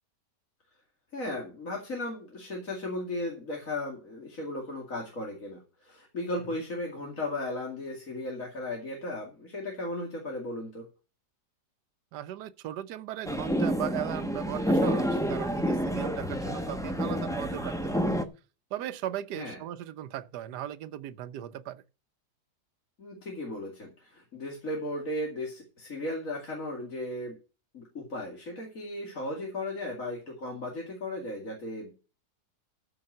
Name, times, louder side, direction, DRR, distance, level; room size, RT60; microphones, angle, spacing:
voice 1, 1.1-10.9 19.3-19.6 23.0-27.3 27.7-31.9, left 1 dB, 50° left, 2.8 m, -36 dB
voice 2, 12.1-18.1 18.7-21.8, right 12 dB, 70° right, 1.3 m, -37 dB
sound 1, 13.3-18.3, equal, 5° left, 0.6 m, -29 dB
14.0 x 5.6 x 6.5 m
omnidirectional pair, 1.9 m